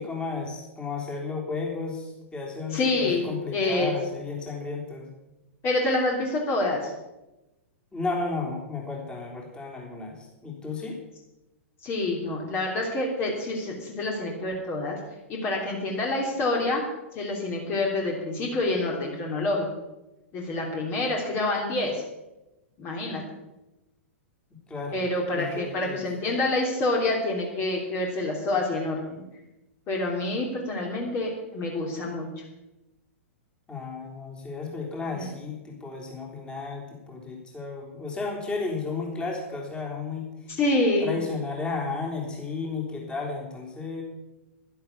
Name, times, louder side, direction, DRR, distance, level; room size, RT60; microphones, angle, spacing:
voice 1, 0.0-5.1 7.9-11.0 24.7-26.1 33.7-40.6 41.0-44.0, left 4 dB, 15° left, -1 dB, 3.6 m, -33 dB
voice 2, 2.7-3.9 5.6-6.9 11.8-15.0 15.3-16.8 17.1-19.7 20.3-22.0 22.8-23.2 24.9-29.2 29.9-32.3 35.0-35.3 40.6-41.1, left 2 dB, 30° left, -1 dB, 3.3 m, -27 dB
11.5 x 11.5 x 7.1 m, 0.99 s
figure-of-eight pair, 105°, 7 cm